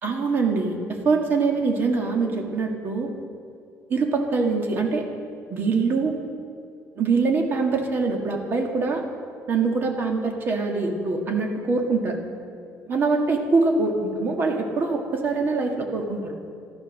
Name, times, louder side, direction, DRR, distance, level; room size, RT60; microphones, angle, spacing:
voice 1, 0.0-3.1 3.9-5.0 5.5-6.2 7.0-9.0 9.5-12.2 12.9-16.3, right 4 dB, 40° right, 2 dB, 2.0 m, -24 dB
13.5 x 13.0 x 6.4 m, 2.4 s
cardioid pair, 145°, 6 cm